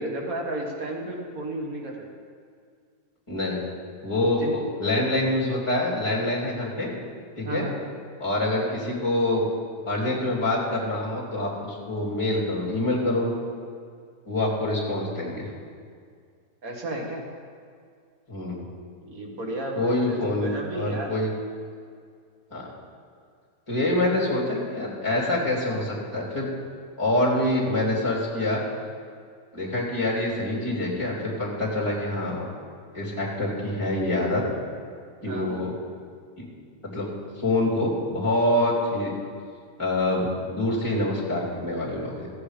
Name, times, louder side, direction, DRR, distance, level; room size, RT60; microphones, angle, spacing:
voice 1, 0.0-2.1 4.4-4.6 7.4-7.8 16.6-17.2 19.0-21.1 35.3-35.7, right 1 dB, 65° right, 0 dB, 2.0 m, -33 dB
voice 2, 3.3-3.6 4.0-6.9 7.4-7.6 8.2-9.5 9.8-13.3 14.3-15.5 18.3-18.6 19.7-21.3 22.5-22.7 23.7-26.5 27.0-28.6 29.5-32.4 32.9-34.4 35.2-35.7 36.9-37.1 37.4-39.1 39.8-42.3, left 1 dB, 20° left, -6 dB, 3.2 m, -26 dB
14.5 x 8.6 x 5.0 m, 2.1 s
omnidirectional pair, 1.6 m